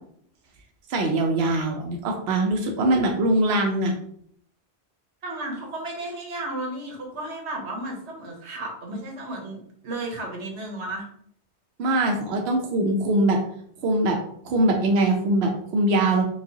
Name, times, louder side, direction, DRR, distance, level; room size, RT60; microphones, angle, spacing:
voice 1, 0.9-3.9 11.8-13.4 13.8-14.2 14.4-16.2, right 1 dB, 70° right, 1 dB, 0.8 m, -22 dB
voice 2, 5.2-11.1, right 2 dB, 85° right, 1 dB, 1.2 m, -33 dB
4.8 x 2.4 x 2.7 m, 0.66 s
omnidirectional pair, 1.1 m